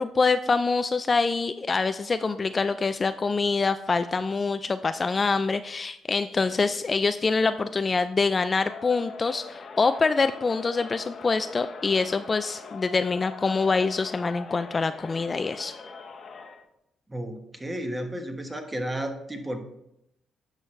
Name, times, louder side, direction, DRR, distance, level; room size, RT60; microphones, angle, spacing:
voice 1, 0.0-15.7, left 4 dB, 30° left, 10 dB, 0.3 m, -25 dB
Crowd, 8.5-16.7, left 5 dB, 50° left, 0.8 m, -42 dB
voice 2, 17.1-19.6, right 1 dB, 15° right, 5 dB, 1.2 m, -33 dB
10.0 x 6.2 x 3.3 m, 0.82 s
cardioid pair, 90°, 0 cm